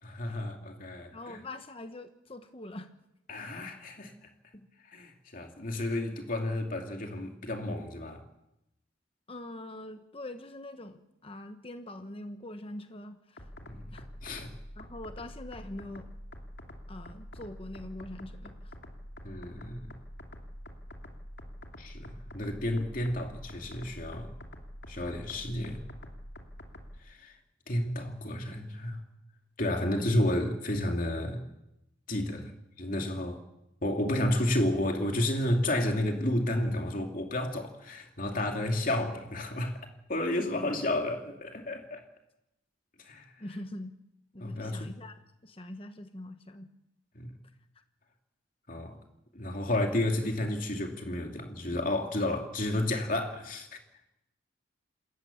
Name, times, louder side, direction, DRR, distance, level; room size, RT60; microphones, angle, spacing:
voice 1, 0.0-1.4 3.3-4.1 4.9-8.2 13.6-13.9 14.2-14.5 19.2-19.9 21.8-24.3 24.9-25.8 27.0-27.3 27.7-29.0 29.6-31.4 32.1-32.5 32.8-33.4 33.8-39.8 40.1-42.0 43.0-43.3 44.4-44.9 47.1-47.3 48.7-49.0 49.3-53.8, left 1 dB, 45° left, 2.8 m, -31 dB
voice 2, 1.1-2.9 4.5-4.7 9.3-13.5 13.9-14.1 14.8-16.1 16.9-18.7 29.8-30.0 32.3-32.5 43.4-43.9 44.3-46.7, left 1 dB, 30° left, 1.1 m, -43 dB
sound 1, 13.4-27.0, equal, 65° left, 2.7 m, -46 dB
27.5 x 14.5 x 7.0 m
head